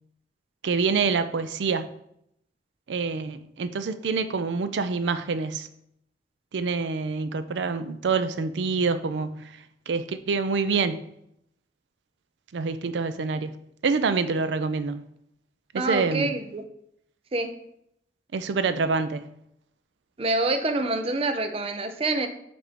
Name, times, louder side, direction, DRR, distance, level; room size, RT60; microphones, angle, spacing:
voice 1, 0.6-1.9 2.9-5.7 6.5-9.6 9.9-11.0 12.5-15.0 15.7-16.3 18.3-19.2, right 4 dB, 85° right, 0.4 m, -26 dB
voice 2, 15.8-16.6 17.3-17.5 20.2-22.3, right 2 dB, 35° right, 0.5 m, -26 dB
7.3 x 2.7 x 5.0 m
head